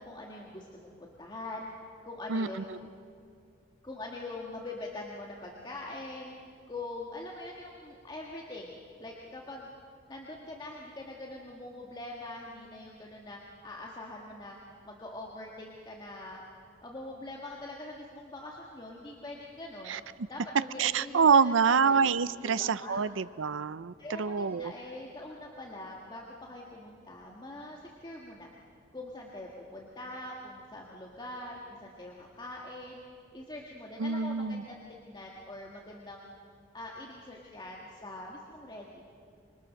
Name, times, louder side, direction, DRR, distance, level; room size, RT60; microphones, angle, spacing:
voice 1, 0.0-1.7 2.0-2.7 3.8-6.3 6.7-9.7 10.1-14.6 14.8-16.4 16.8-22.1 22.4-23.0 24.0-28.5 28.9-33.0 33.3-36.3 36.7-39.0, left 2 dB, 20° left, -2 dB, 1.7 m, -43 dB
voice 2, 20.8-24.7 34.0-34.6, right 6 dB, 70° right, 16 dB, 0.5 m, -26 dB
26.5 x 23.0 x 6.4 m, 2.3 s
head